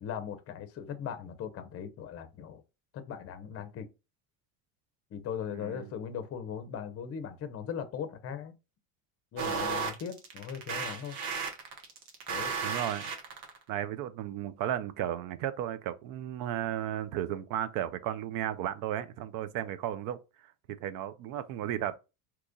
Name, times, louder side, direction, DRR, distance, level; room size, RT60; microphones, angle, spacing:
voice 1, 0.0-2.6 2.9-3.9 5.1-8.5 9.3-11.2 12.3-12.6, left 8 dB, 35° left, 0.7 m, -39 dB
sound 1, 9.4-13.6, right 5 dB, 70° right, 1.2 m, -34 dB
voice 2, 12.6-13.1 13.7-20.2 20.7-22.0, right 11 dB, 50° right, 0.5 m, -34 dB
3.0 x 2.4 x 3.6 m
supercardioid pair, 105°, 43 cm